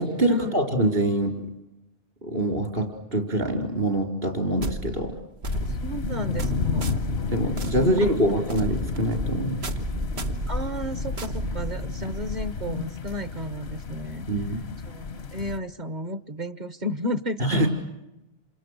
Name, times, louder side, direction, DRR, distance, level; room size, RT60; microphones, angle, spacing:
voice 1, 0.0-1.4 2.2-5.1 7.3-9.6 12.0-12.1 14.3-14.6 17.4-17.7, right 1 dB, 65° right, 5 dB, 4.9 m, -25 dB
sound 1, 4.6-12.2, right 1 dB, 90° right, 1.8 m, -33 dB
sound 2, 5.5-15.6, left 5 dB, 90° left, 1.4 m, -32 dB
voice 2, 5.8-7.0 7.7-8.0 8.3-8.4 10.5-14.3 14.9-17.7, equal, 45° right, 13 dB, 1.2 m, -33 dB
29.5 x 27.0 x 6.7 m, 0.93 s
omnidirectional pair, 1.0 m